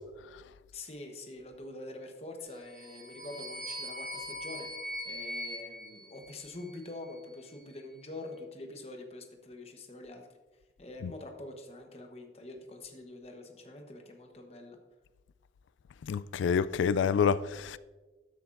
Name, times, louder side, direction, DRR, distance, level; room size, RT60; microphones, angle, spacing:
voice 1, 0.7-4.7 5.1-10.3 10.8-14.8, left 2 dB, 35° left, 1.0 m, -45 dB
sound 1, 2.6-6.9, equal, 5° left, 2.0 m, -41 dB
voice 2, 16.1-17.8, left 6 dB, 80° left, 0.3 m, -28 dB
13.0 x 7.8 x 2.5 m
head